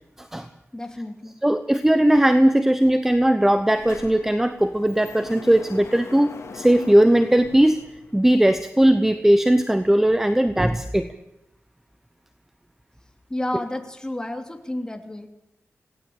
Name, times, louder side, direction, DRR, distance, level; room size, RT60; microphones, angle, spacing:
voice 1, 0.2-0.5 1.4-7.8 8.1-11.1, right 1 dB, 5° right, 10 dB, 1.0 m, -18 dB
voice 2, 0.7-1.4 13.3-15.3, left 1 dB, 15° left, 5 dB, 2.9 m, -31 dB
Sliding door, 3.0-3.1 3.4-8.4, left 4 dB, 65° left, 3.4 m, -42 dB
27.0 x 18.0 x 8.7 m, 0.88 s
wide cardioid pair, 150°, 5 cm